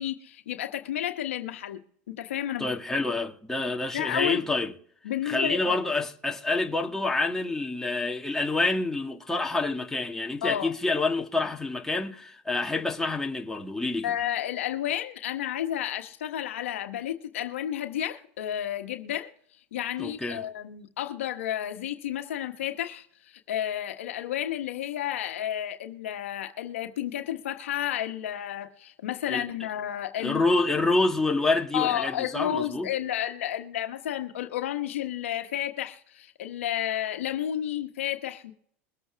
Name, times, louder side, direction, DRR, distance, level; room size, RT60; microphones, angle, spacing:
voice 1, 0.0-1.8 2.1-2.7 3.9-4.4 5.0-5.8 10.4-10.7 14.0-19.3 19.7-30.4 31.7-38.5, left 11 dB, 90° left, 1.2 m, -31 dB
voice 2, 2.6-4.7 5.3-14.1 20.0-20.4 29.3-29.5 30.2-32.9, left 3 dB, 5° left, 1.8 m, -27 dB
22.5 x 8.0 x 3.5 m
supercardioid pair, 105°, 7 cm